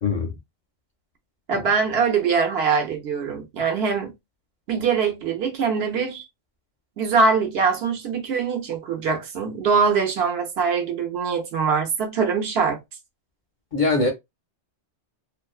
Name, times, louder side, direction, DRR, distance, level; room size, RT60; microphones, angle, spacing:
voice 1, 0.0-0.3 1.5-1.6 13.7-14.1, left 3 dB, 55° left, 0.6 m, -22 dB
voice 2, 1.5-4.1 4.7-6.2 7.0-12.8, right 5 dB, 65° right, 0.9 m, -23 dB
2.5 x 2.1 x 2.3 m
omnidirectional pair, 1.2 m